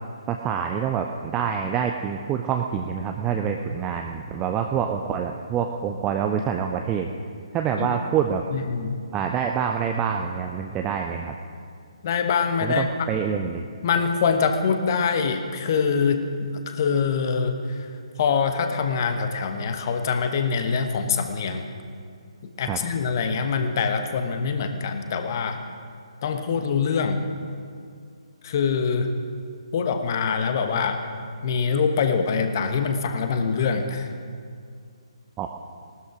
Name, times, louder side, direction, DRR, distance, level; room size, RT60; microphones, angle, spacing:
voice 1, 0.3-7.1 7.5-8.4 9.1-11.4 12.6-13.7 22.7-22.8 35.4-35.5, right 7 dB, 15° right, 3 dB, 0.5 m, -26 dB
voice 2, 8.5-9.0 12.0-12.9 13.8-17.8 18.2-21.6 22.6-25.6 26.2-27.2 28.4-29.1 29.7-31.0 31.4-34.1, left 5 dB, 35° left, 7 dB, 1.1 m, -24 dB
18.5 x 12.5 x 5.0 m, 2.3 s
figure-of-eight pair, 140°, 3 cm